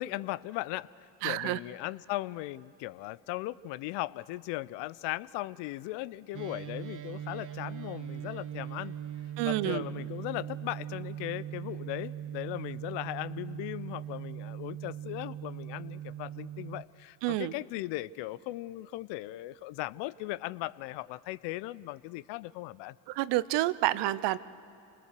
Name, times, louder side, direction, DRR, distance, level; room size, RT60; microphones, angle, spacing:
voice 1, 0.0-8.9 9.5-22.9, left 17 dB, 70° left, 19 dB, 0.6 m, -38 dB
voice 2, 1.2-1.6 9.4-9.8 17.2-17.5 23.1-24.4, right 16 dB, 65° right, 17 dB, 0.7 m, -29 dB
sound 1, 6.3-16.8, right 10 dB, 45° right, 1.2 m, -40 dB
27.0 x 20.0 x 6.7 m, 2.8 s
hypercardioid pair, 60°, 45 cm